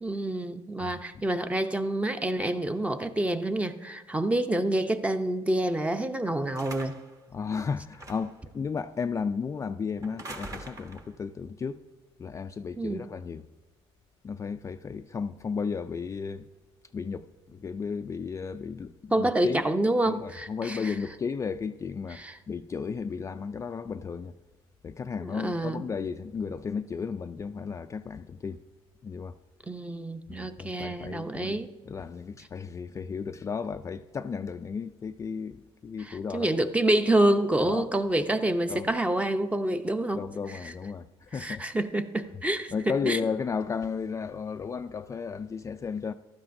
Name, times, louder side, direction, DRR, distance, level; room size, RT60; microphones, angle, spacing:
voice 1, 0.0-6.9 12.8-13.1 19.1-20.9 22.2-22.3 25.3-25.9 29.7-31.7 36.1-40.2 41.4-42.7 43.1-43.2, right 1 dB, 10° right, 0.7 m, -27 dB
sound 1, 6.5-7.2 7.9-8.4 10.0-11.1, right 2 dB, 25° right, 1.1 m, -43 dB
voice 2, 7.3-11.8 12.2-13.5 14.2-16.5 16.9-19.6 20.1-24.3 24.8-28.6 29.0-29.4 30.3-31.6 31.9-36.5 37.6-37.9 38.7-38.9 40.1-41.6 42.7-46.1, left 5 dB, 25° left, 0.3 m, -34 dB
15.0 x 12.0 x 2.6 m
cardioid pair, 100°, 12 cm